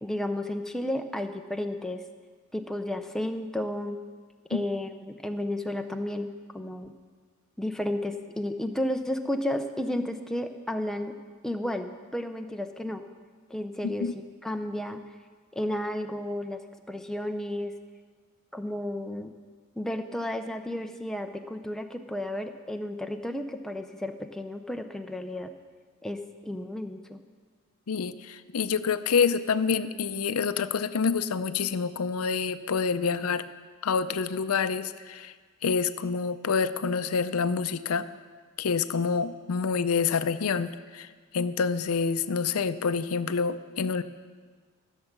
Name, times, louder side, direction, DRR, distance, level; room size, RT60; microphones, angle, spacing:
voice 1, 0.0-2.0 2.5-4.0 4.5-6.9 7.6-11.1 11.4-13.0 13.5-14.1 14.4-15.0 15.5-17.7 18.5-19.3 19.8-25.5 26.0-27.2, left 1 dB, ahead, 5 dB, 0.6 m, -32 dB
voice 2, 27.9-33.4 33.8-35.3 35.6-38.1 38.6-41.1 41.3-44.0, left 5 dB, 80° left, 13 dB, 0.5 m, -27 dB
15.0 x 7.3 x 6.6 m, 1.6 s
head